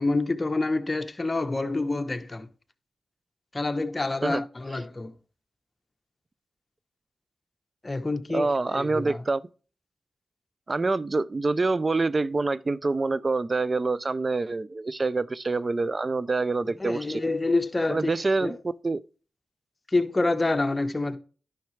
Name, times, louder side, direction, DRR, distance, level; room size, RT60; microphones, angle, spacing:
voice 1, 0.0-2.5 3.5-5.1 7.8-9.2 16.8-18.1 18.4-18.6 19.9-21.2, left 2 dB, 30° left, 0.9 m, -27 dB
voice 2, 8.3-9.4 10.7-17.2 17.9-19.0, right 3 dB, 40° right, 0.4 m, -26 dB
10.5 x 5.7 x 3.2 m
cardioid pair, 45°, 0 cm